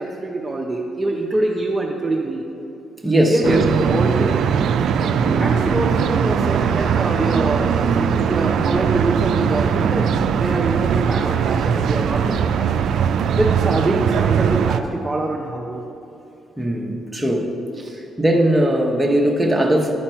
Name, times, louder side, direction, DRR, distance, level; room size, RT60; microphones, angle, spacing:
voice 1, 0.0-2.4 3.3-4.4 5.4-10.1 10.4-12.7 13.4-15.8 17.8-18.0, right 2 dB, 20° right, -1 dB, 0.6 m, -24 dB
voice 2, 3.0-3.6 5.2-5.5 16.6-17.5 18.0-19.9, right 1 dB, 5° right, -1 dB, 1.0 m, -19 dB
sound 1, 3.4-14.8, right 7 dB, 70° right, 0.3 m, -20 dB
11.0 x 4.3 x 4.4 m, 2.9 s
cardioid pair, 90°, 0 cm